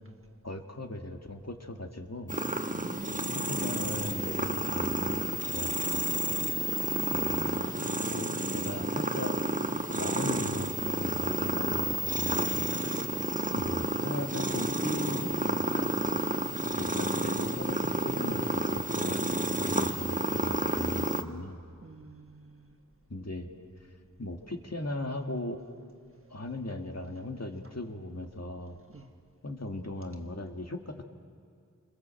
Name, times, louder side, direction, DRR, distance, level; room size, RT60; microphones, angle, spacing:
voice 1, 0.4-2.4 3.3-5.7 7.1-9.4 9.9-12.6 13.5-15.9 16.6-19.2 19.6-21.6 23.1-23.5 24.2-25.6 26.3-28.8 29.4-31.0, left 1 dB, 55° left, 2.2 m, -38 dB
sound 1, 2.3-21.2, right 1 dB, 25° right, 1.2 m, -30 dB
voice 2, 2.7-3.5 6.6-7.0 12.4-13.3 21.8-22.8 28.9-29.1, right 3 dB, 45° right, 1.5 m, -46 dB
27.0 x 22.0 x 7.7 m
wide cardioid pair, 45°, 31 cm